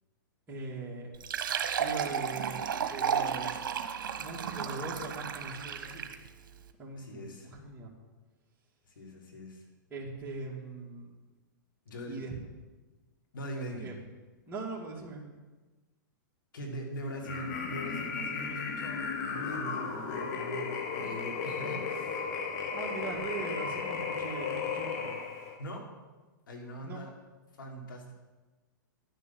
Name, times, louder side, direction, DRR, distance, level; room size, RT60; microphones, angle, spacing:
voice 1, 0.5-1.1 1.8-3.8 4.2-6.1 6.8-7.9 9.9-11.1 12.1-12.3 13.8-14.0 14.5-15.3 22.7-25.2 26.8-27.0, right 3 dB, 20° right, -5 dB, 2.5 m, -41 dB
Fill (with liquid), 1.1-6.3, right 7 dB, 70° right, 1.1 m, -33 dB
voice 2, 6.9-7.5 8.9-9.7 11.8-12.3 13.3-13.9 16.5-22.3 25.6-25.9 26.5-27.1 27.6-28.1, right 1 dB, 80° left, 1 dB, 3.0 m, -42 dB
sound 1, 17.2-25.6, left 5 dB, 55° left, 1.7 m, -35 dB
11.0 x 6.8 x 7.2 m, 1.2 s
hypercardioid pair, 125°, 11 cm